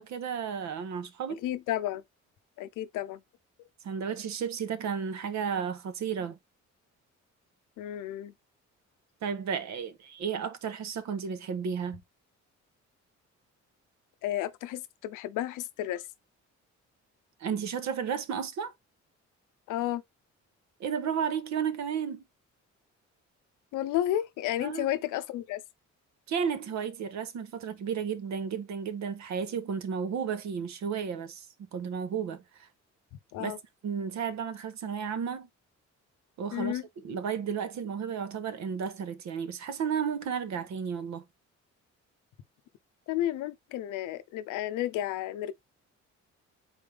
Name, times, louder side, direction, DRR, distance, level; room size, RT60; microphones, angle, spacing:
voice 1, 0.0-1.4 3.8-6.4 9.2-12.0 17.4-18.7 20.8-22.2 24.6-24.9 26.3-31.5 31.7-32.7 33.4-33.6 33.8-35.5 36.4-41.2, right 7 dB, 65° right, 1.0 m, -33 dB
voice 2, 1.4-2.0 2.6-3.2 7.8-8.3 14.2-16.0 19.7-20.0 23.7-25.6 33.3-33.6 36.5-36.8 43.1-45.5, left 13 dB, 90° left, 0.6 m, -32 dB
4.2 x 3.3 x 3.3 m
cardioid pair, 90°, 30 cm